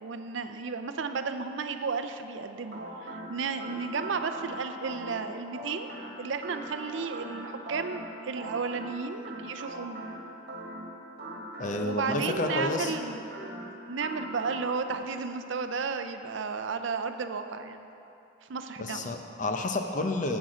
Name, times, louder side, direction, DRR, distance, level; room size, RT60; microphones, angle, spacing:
voice 1, 0.0-5.9 6.2-10.0 11.8-13.2 13.9-17.9 18.4-19.1, right 5 dB, 75° right, 8 dB, 0.5 m, -33 dB
sound 1, 2.6-15.0, right 1 dB, 55° right, 1.6 m, -41 dB
voice 2, 11.6-12.9 18.8-20.4, left 2 dB, 40° left, 4 dB, 0.7 m, -30 dB
10.5 x 8.0 x 5.0 m, 2.8 s
head